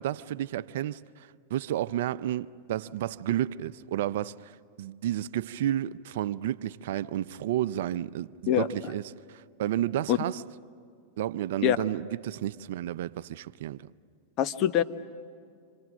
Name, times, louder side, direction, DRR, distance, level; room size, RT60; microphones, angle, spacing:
voice 1, 0.0-9.0 9.3-10.4 11.2-13.9, right 12 dB, 65° right, 0.6 m, -31 dB
voice 2, 14.4-14.8, left 11 dB, 40° left, 1.1 m, -23 dB
27.5 x 26.5 x 6.3 m
hypercardioid pair, 105°, 0 cm